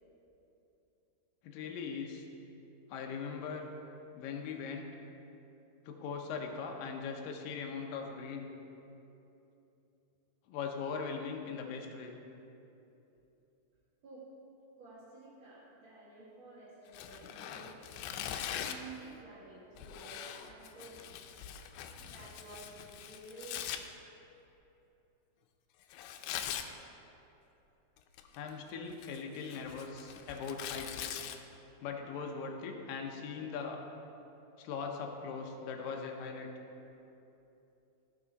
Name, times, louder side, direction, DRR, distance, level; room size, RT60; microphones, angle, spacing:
voice 1, 1.4-2.3 2.9-3.6 4.1-4.9 5.9-8.5 10.5-12.1 28.3-31.2 31.8-33.8 34.6-36.5, left 5 dB, 75° left, 2 dB, 2.3 m, -40 dB
voice 2, 14.8-17.9 18.5-21.1 22.0-23.8, right 3 dB, 45° right, -10 dB, 1.9 m, -52 dB
Tearing, 16.9-18.9 19.8-23.8 25.9-26.7 28.0-28.5 28.9-31.4, left 10 dB, 90° left, 2.6 m, -42 dB
15.0 x 6.1 x 4.0 m, 2.9 s
omnidirectional pair, 4.5 m